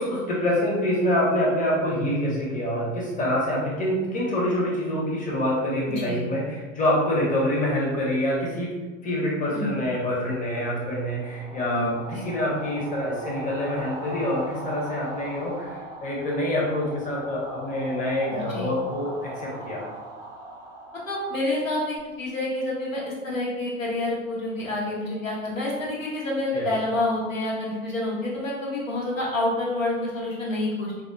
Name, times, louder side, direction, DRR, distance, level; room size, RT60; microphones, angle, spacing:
voice 1, 0.0-8.7 9.0-19.8 26.5-26.7, left 1 dB, 20° left, -4 dB, 0.9 m, -26 dB
voice 2, 5.9-6.2 9.5-9.7 11.7-11.9 12.1-12.2 18.3-18.7 21.1-31.0, left 2 dB, 75° left, -4 dB, 1.1 m, -28 dB
sound 1, 10.9-22.0, right 2 dB, 10° right, 0.5 m, -39 dB
4.7 x 2.1 x 2.3 m, 1.2 s
figure-of-eight pair, 85°, 39 cm